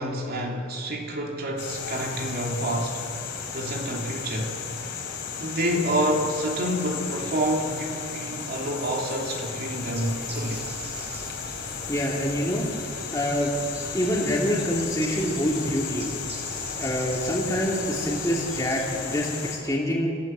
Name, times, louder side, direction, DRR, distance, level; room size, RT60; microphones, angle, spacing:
voice 1, 0.0-3.1 3.5-4.6 5.4-10.7, right 1 dB, 50° right, 0 dB, 3.2 m, -28 dB
sound 1, 1.6-19.6, left 6 dB, 60° left, 3.7 m, -34 dB
Bird, 9.6-19.3, right 2 dB, 35° right, 5.7 m, -43 dB
voice 2, 11.9-12.7 13.1-13.5 13.9-16.0 16.8-20.1, equal, 15° left, -4 dB, 3.1 m, -26 dB
27.5 x 15.5 x 7.8 m, 2.5 s
head